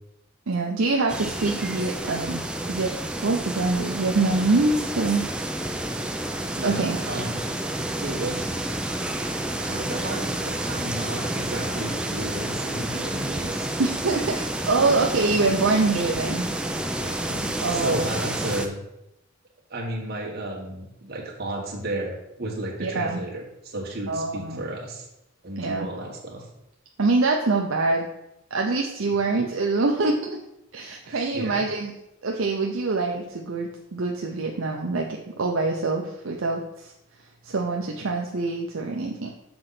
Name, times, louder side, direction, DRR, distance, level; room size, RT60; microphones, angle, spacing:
voice 1, 0.5-2.9 3.2-5.2 6.6-7.0 13.8-14.3 14.7-16.5 17.3-18.0 22.8-23.2 24.1-24.6 25.6-25.9 27.0-28.1 28.5-30.4 30.7-31.9 32.2-36.9 37.4-39.3, right 3 dB, 65° right, 1 dB, 0.6 m, -25 dB
sound 1, 1.1-18.7, right 1 dB, 5° right, 0.4 m, -30 dB
voice 2, 6.5-7.5 8.0-8.5 9.6-13.7 16.9-17.4 17.7-18.8 19.7-25.1 25.4-26.4 29.0-29.2 31.0-31.6, right 1 dB, 45° right, -1 dB, 1.6 m, -33 dB
7.0 x 3.9 x 5.8 m, 0.86 s
head